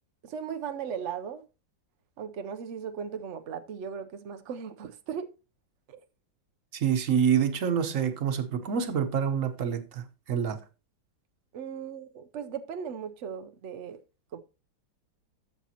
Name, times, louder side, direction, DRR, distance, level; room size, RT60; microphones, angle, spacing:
voice 1, 0.2-1.4 2.2-5.3 5.9-6.0 11.5-14.0 14.3-14.4, right 7 dB, 80° right, 0.6 m, -37 dB
voice 2, 6.7-10.6, right 7 dB, 50° right, 1.1 m, -27 dB
12.5 x 7.2 x 2.8 m
omnidirectional pair, 2.1 m